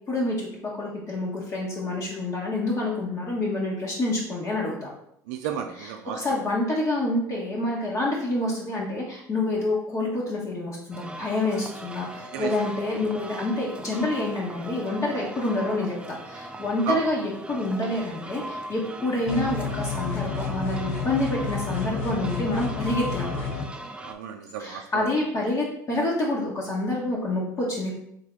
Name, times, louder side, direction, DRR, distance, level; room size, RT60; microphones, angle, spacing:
voice 1, 0.1-4.9 5.8-5.9 6.1-23.4 24.6-27.9, left 2 dB, 35° left, -4 dB, 1.2 m, -27 dB
voice 2, 5.3-6.2 12.3-12.5 16.8-17.0 24.0-25.0, right 7 dB, 75° right, 3 dB, 0.4 m, -32 dB
sound 1, 10.9-24.1, right 1 dB, 10° right, 0.5 m, -39 dB
sound 2, 19.3-23.7, left 5 dB, 65° left, 0.8 m, -30 dB
3.6 x 3.4 x 3.6 m, 0.72 s
hypercardioid pair, 75°, 9 cm